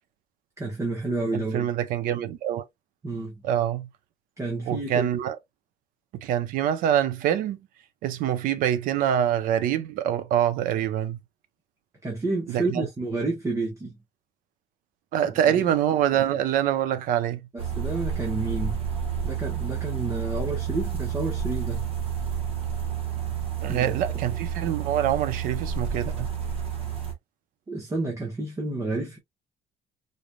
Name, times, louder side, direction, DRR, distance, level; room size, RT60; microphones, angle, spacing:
voice 1, 0.6-1.7 3.0-3.4 4.4-5.1 12.0-14.0 15.5-15.6 17.5-18.8 19.2-21.9 23.7-23.9 27.7-29.2, right 2 dB, 20° right, 1.0 m, -30 dB
voice 2, 1.3-2.6 3.4-3.9 4.7-5.4 6.2-7.6 8.0-11.2 12.5-12.9 15.1-17.4 23.6-26.3, right 10 dB, 90° right, 0.7 m, -25 dB
sound 1, 17.6-27.1, right 8 dB, 45° right, 1.4 m, -30 dB
4.0 x 3.3 x 2.3 m
cardioid pair, 150°, 14 cm